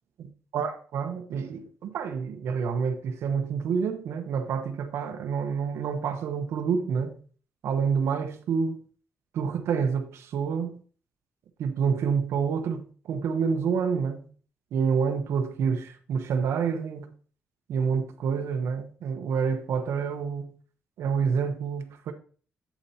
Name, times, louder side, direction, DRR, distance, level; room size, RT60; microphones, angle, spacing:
voice 1, 0.5-7.2 7.6-8.8 9.3-10.8 11.6-14.3 14.7-17.1 17.7-20.5 21.0-22.1, right 6 dB, 75° right, 0.9 m, -28 dB
8.8 x 8.2 x 2.8 m
cardioid pair, 135°, 5 cm